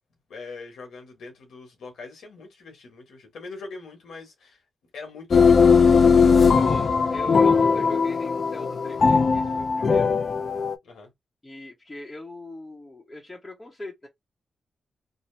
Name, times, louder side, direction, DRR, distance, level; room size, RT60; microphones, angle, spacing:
voice 1, 0.3-4.6 4.9-5.9 6.1-6.6 10.8-11.1, left 3 dB, 85° left, 1.2 m, -42 dB
sound 1, 5.3-10.8, left 5 dB, 55° left, 0.4 m, -19 dB
voice 2, 6.6-10.1 11.4-14.1, left 2 dB, 20° left, 0.9 m, -40 dB
2.8 x 2.0 x 3.2 m
cardioid pair, 65°, 0 cm